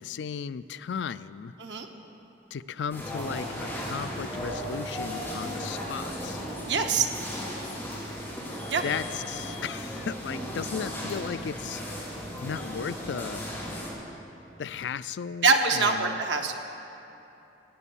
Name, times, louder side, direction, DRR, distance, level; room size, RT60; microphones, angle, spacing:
voice 1, 0.0-1.5 2.5-6.4 8.8-13.4 14.6-16.2, left 7 dB, 75° left, 15 dB, 0.4 m, -35 dB
sound 1, 2.9-13.9, equal, 10° left, 3.2 m, -36 dB
voice 2, 6.7-7.1 8.7-8.8 15.4-16.6, right 4 dB, 75° right, 4 dB, 1.1 m, -24 dB
17.0 x 6.9 x 8.4 m, 2.9 s
head